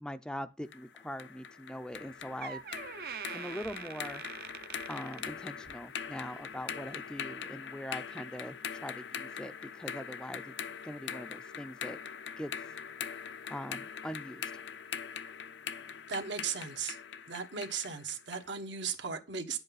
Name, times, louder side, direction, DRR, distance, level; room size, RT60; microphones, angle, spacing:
voice 1, 0.0-2.6 3.3-4.2 4.9-10.5 10.8-12.0 12.4-12.5 13.5-14.5, equal, 5° left, 0.4 m, -42 dB
sound 1, 0.7-18.5, left 7 dB, 80° left, 0.6 m, -42 dB
Door, 1.9-2.1 2.4-5.9 6.2-6.5 7.3-7.4, right 7 dB, 55° right, 0.6 m, -44 dB
voice 2, 16.1-17.0 17.3-19.6, right 6 dB, 80° right, 1.5 m, -36 dB
10.0 x 7.9 x 4.0 m
head